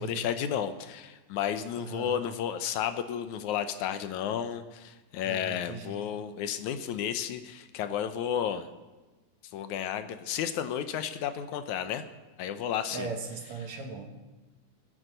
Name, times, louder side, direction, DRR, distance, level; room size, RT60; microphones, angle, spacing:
voice 1, 0.0-8.7 9.5-12.1 12.4-13.1, left 9 dB, 75° left, 10 dB, 2.2 m, -32 dB
voice 2, 1.8-2.2 5.2-6.0 12.9-14.2, right 4 dB, 65° right, 3 dB, 2.9 m, -38 dB
19.0 x 10.0 x 6.7 m, 1.2 s
omnidirectional pair, 3.5 m